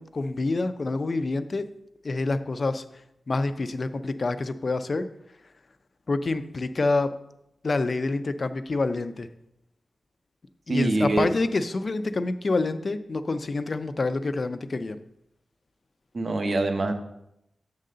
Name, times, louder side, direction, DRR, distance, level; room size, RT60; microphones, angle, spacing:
voice 1, 0.0-1.7 2.0-2.8 3.3-5.1 6.1-7.1 7.6-9.3 10.7-15.0, left 3 dB, 40° left, 10 dB, 0.4 m, -27 dB
voice 2, 10.7-11.3 16.1-16.9, right 2 dB, 45° right, 6 dB, 0.8 m, -24 dB
7.5 x 3.8 x 6.6 m, 0.82 s
wide cardioid pair, 165°, 0 cm